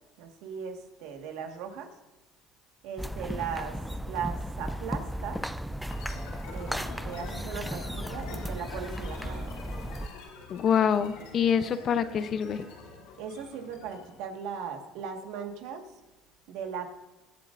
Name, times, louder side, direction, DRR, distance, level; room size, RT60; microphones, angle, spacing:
voice 1, 0.2-1.9 2.8-3.8 4.1-5.4 6.5-9.5 13.2-15.9 16.5-17.0, right 7 dB, 75° right, 4 dB, 1.6 m, -38 dB
sound 1, 3.0-10.1, equal, ahead, 0.4 m, -35 dB
sound 2, 5.9-14.2, left 4 dB, 85° left, 2.6 m, -46 dB
voice 2, 10.5-12.7, left 7 dB, 45° left, 12 dB, 0.7 m, -26 dB
21.0 x 7.5 x 2.6 m, 1.1 s
supercardioid pair, 105°, 0 cm